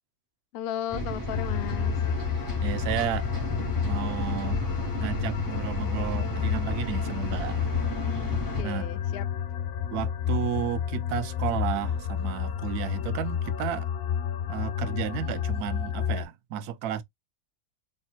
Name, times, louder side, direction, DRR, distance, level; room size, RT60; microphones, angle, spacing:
voice 1, 0.5-2.0 8.6-9.2, left 11 dB, 85° left, 0.5 m, -35 dB
sound 1, 0.9-8.6, equal, 15° left, 2.0 m, -33 dB
sound 2, 1.3-16.2, left 8 dB, 70° left, 1.1 m, -30 dB
voice 2, 2.3-3.3 3.8-4.6 5.0-7.7 8.6-9.0 9.9-13.9 14.5-17.0, right 9 dB, 90° right, 1.1 m, -33 dB
4.2 x 3.3 x 2.3 m
omnidirectional pair, 1.6 m